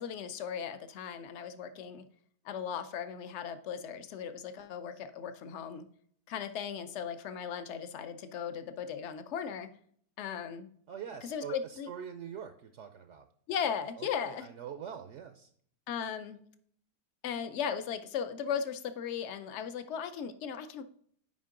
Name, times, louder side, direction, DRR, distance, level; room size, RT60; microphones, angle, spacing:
voice 1, 0.0-2.0 2.4-5.9 6.3-9.7 10.2-10.7 11.2-11.9 13.5-14.5 15.9-16.4 17.2-20.8, left 7 dB, 65° left, 9 dB, 0.7 m, -37 dB
voice 2, 10.9-13.3 14.0-15.5, right 8 dB, 65° right, 8 dB, 0.7 m, -44 dB
7.5 x 5.2 x 3.7 m, 0.62 s
omnidirectional pair, 1.8 m